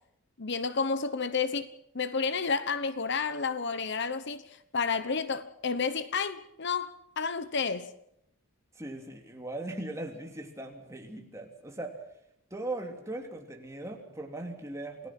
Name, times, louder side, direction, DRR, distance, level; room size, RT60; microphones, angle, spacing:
voice 1, 0.4-1.7 1.9-4.4 4.7-6.9 7.2-7.9, left 5 dB, 50° left, 1.0 m, -30 dB
voice 2, 8.7-12.0 12.5-15.1, right 2 dB, 15° right, 2.9 m, -39 dB
28.0 x 18.0 x 6.1 m
head